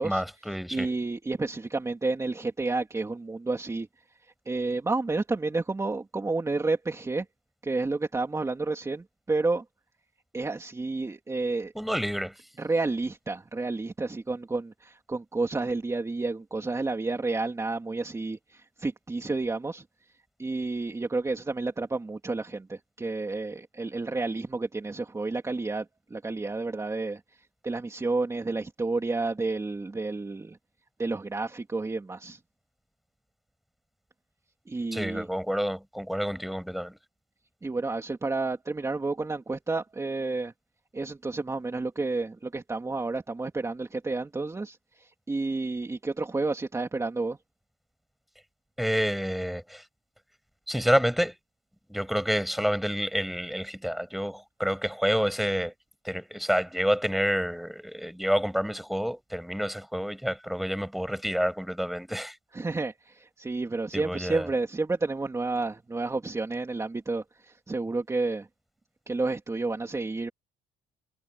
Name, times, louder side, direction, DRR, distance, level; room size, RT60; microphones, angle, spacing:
voice 1, 0.0-0.9 11.7-12.3 34.9-37.0 48.8-49.8 50.7-51.3 51.9-55.7 56.0-62.4 63.9-64.5, equal, ahead, 6.3 m, -28 dB
voice 2, 0.7-3.9 4.2-7.2 7.6-9.6 10.3-11.7 12.6-19.8 20.4-30.6 31.0-32.4 34.7-35.3 37.6-40.5 40.9-47.4 62.5-68.5 69.1-70.3, right 3 dB, 15° right, 2.9 m, -30 dB
cardioid pair, 110°, 17 cm